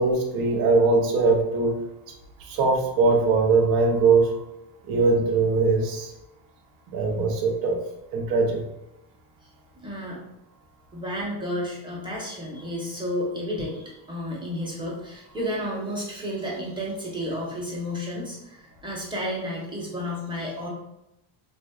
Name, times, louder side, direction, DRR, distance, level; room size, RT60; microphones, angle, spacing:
voice 1, 0.0-1.7 2.4-4.3 4.9-6.1 6.9-7.8 8.1-8.6, right 3 dB, 50° right, 2 dB, 0.6 m, -21 dB
voice 2, 9.8-10.2 10.9-20.7, equal, 10° right, -4 dB, 0.9 m, -32 dB
3.5 x 2.5 x 2.3 m, 0.89 s
cardioid pair, 120°, 48 cm